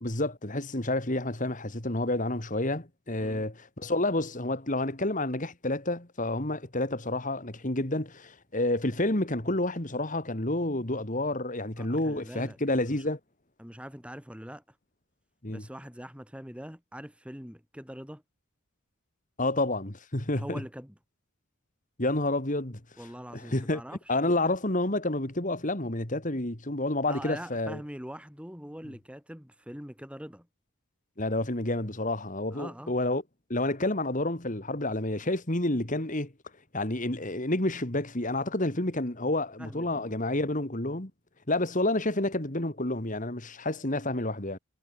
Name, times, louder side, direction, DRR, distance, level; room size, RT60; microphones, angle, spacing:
voice 1, 0.0-13.2 15.4-15.6 19.4-20.6 22.0-22.8 23.3-23.8 24.1-27.8 31.2-33.2 33.5-36.3 36.7-41.1 41.5-44.6, left 2 dB, 35° left, 2.2 m, -29 dB
voice 2, 3.2-3.5 11.8-13.1 13.6-14.8 15.5-18.2 20.4-20.9 23.0-24.2 27.1-30.5 32.5-32.9 39.6-40.1, equal, 5° right, 6.1 m, -43 dB
head